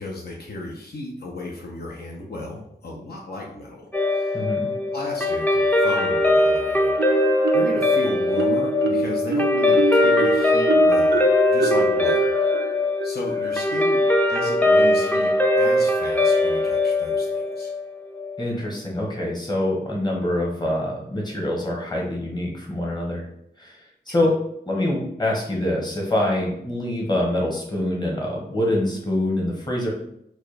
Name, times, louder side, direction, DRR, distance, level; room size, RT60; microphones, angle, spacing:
voice 1, 0.0-4.4 4.9-11.2 11.5-12.3 13.0-15.3 15.5-17.7 24.1-24.2, left 2 dB, 65° left, -2 dB, 0.7 m, -34 dB
Guitar, 3.9-18.5, left 2 dB, 10° left, 0.4 m, -20 dB
voice 2, 4.3-4.7 18.4-23.2 23.6-23.8 24.1-24.3 24.7-29.9, left 1 dB, 25° left, -3 dB, 1.1 m, -25 dB
Marimba xylophone, 7.0-7.9 8.4-13.9, right 4 dB, 90° right, 0.4 m, -27 dB
4.2 x 2.3 x 3.2 m, 0.75 s
wide cardioid pair, 95°, 17 cm